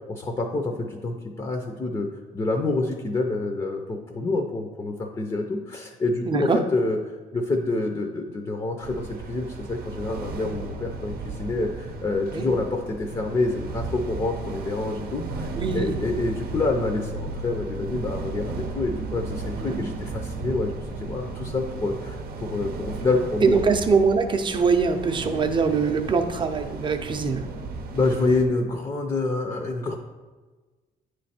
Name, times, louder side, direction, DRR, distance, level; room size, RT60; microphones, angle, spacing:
voice 1, 0.1-2.1 2.3-7.0 7.3-15.5 15.7-23.6 27.9-30.0, left 2 dB, 30° left, 3 dB, 0.5 m, -27 dB
voice 2, 6.3-6.6 12.3-12.5 15.5-16.0 19.7-19.8 23.4-27.4, right 5 dB, 30° right, 6 dB, 0.6 m, -22 dB
sound 1, 8.8-28.5, right 3 dB, 85° right, 0.6 m, -35 dB
9.1 x 3.2 x 4.2 m, 1.3 s
cardioid pair, 120°, 15 cm